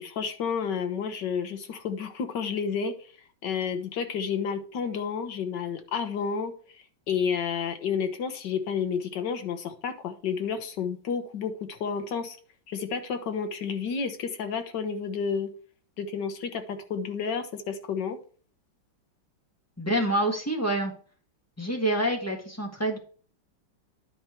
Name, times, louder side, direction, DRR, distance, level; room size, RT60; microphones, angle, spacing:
voice 1, 0.0-3.1 3.4-12.4 12.7-15.5 16.0-18.2, left 6 dB, 65° left, 7 dB, 1.6 m, -31 dB
voice 2, 19.8-20.9 21.6-23.0, right 1 dB, 10° left, 2 dB, 1.4 m, -27 dB
10.0 x 4.4 x 4.5 m, 0.42 s
omnidirectional pair, 2.1 m